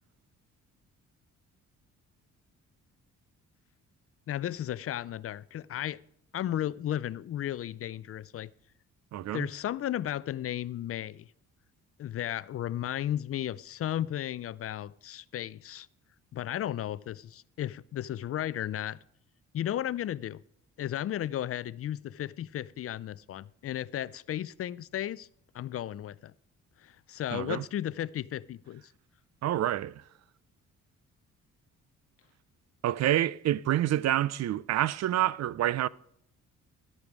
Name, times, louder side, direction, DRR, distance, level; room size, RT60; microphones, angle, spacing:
voice 1, 4.3-6.0 6.3-8.5 9.3-11.3 12.0-15.9 16.3-19.0 19.5-20.4 20.8-25.3 25.5-26.3 26.8-28.8, left 11 dB, 50° left, 0.5 m, -34 dB
voice 2, 9.1-9.5 27.3-27.6 29.4-30.0 32.8-35.9, right 13 dB, 60° right, 0.5 m, -27 dB
12.5 x 8.6 x 4.6 m
cardioid pair, 90°, 30 cm